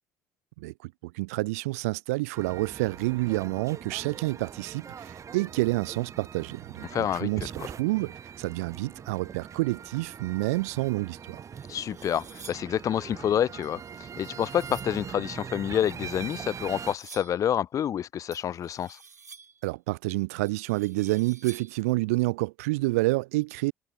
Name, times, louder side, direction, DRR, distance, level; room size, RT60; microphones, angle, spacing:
voice 1, 0.6-11.4 19.6-23.7, right 22 dB, 65° right, 0.9 m, -29 dB
sound 1, 2.3-17.0, right 7 dB, 35° right, 5.3 m, -42 dB
voice 2, 6.9-7.3 7.6-7.7 11.7-19.0, left 10 dB, 40° left, 0.6 m, -28 dB
sound 2, 11.4-12.8 13.6-15.0 16.0-17.5 18.3-19.7 20.4-21.9, right 5 dB, 85° right, 4.5 m, -51 dB
figure-of-eight pair, 55°, 9 cm